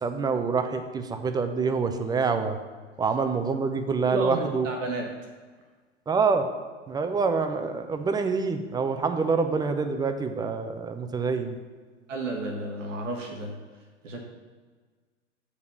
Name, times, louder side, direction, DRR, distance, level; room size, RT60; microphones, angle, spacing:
voice 1, 0.0-2.6 3.0-4.7 6.1-6.5 6.9-11.6, right 5 dB, 10° right, 8 dB, 0.5 m, -26 dB
voice 2, 4.1-5.3 12.1-13.6 14.0-14.2, right 2 dB, 75° right, 1 dB, 1.4 m, -32 dB
8.1 x 5.1 x 6.9 m, 1.5 s
hypercardioid pair, 100°, 38 cm